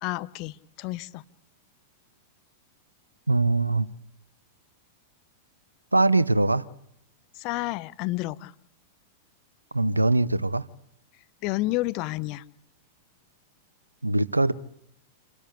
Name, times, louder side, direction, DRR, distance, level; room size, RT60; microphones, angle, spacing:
voice 1, 0.0-1.2 7.3-8.5 11.4-12.4, left 19 dB, 45° left, 0.9 m, -30 dB
voice 2, 3.3-3.9 5.9-6.7 9.7-10.7 14.0-14.5, right 2 dB, 90° right, 0.8 m, -22 dB
27.5 x 13.0 x 8.4 m
figure-of-eight pair, 95°, 0 cm